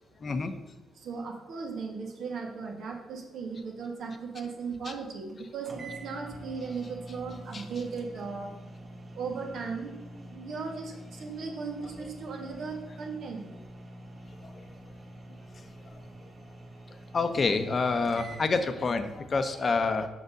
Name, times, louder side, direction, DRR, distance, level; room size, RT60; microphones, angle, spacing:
voice 1, 0.2-0.5 7.5-7.6 17.1-20.1, left 4 dB, 40° left, 8 dB, 0.9 m, -27 dB
voice 2, 0.9-8.5 9.1-13.5, right 5 dB, 70° right, 2 dB, 1.7 m, -37 dB
sound 1, 5.3-5.4 5.7-18.5, right 1 dB, 30° right, 1.5 m, -46 dB
6.7 x 5.9 x 5.1 m, 1.1 s
cardioid pair, 90°, 0 cm